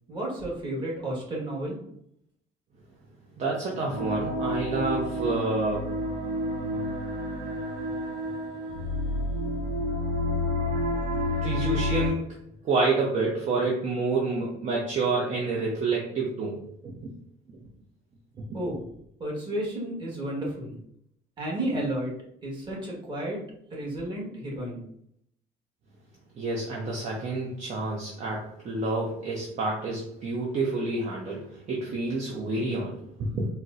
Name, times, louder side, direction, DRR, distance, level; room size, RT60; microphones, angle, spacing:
voice 1, 0.1-1.8 18.5-18.8 19.2-20.8 21.4-22.1 22.4-23.4 23.7-24.8, right 1 dB, 30° right, -4 dB, 1.4 m, -32 dB
voice 2, 3.4-5.9 10.7-10.8 11.4-12.3 12.6-17.1 26.4-33.5, right 3 dB, 45° right, -3 dB, 0.7 m, -28 dB
sound 1, 3.9-12.1, left 1 dB, 70° right, 0.9 m, -29 dB
4.1 x 2.0 x 2.5 m, 0.71 s
cardioid pair, 110°, 17 cm